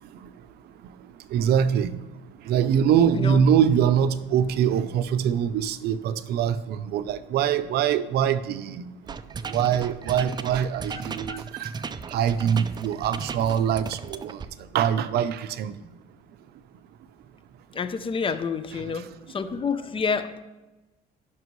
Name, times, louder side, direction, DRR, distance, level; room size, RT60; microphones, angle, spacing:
voice 1, 1.3-1.9 2.5-8.8 9.5-11.7 12.1-14.4 14.7-15.7, right 8 dB, 70° right, 0.6 m, -23 dB
sound 1, 9.1-14.5, right 5 dB, 25° right, 0.4 m, -35 dB
voice 2, 17.7-20.4, left 5 dB, 30° left, 0.6 m, -29 dB
16.5 x 6.0 x 3.1 m
cardioid pair, 110°, 17 cm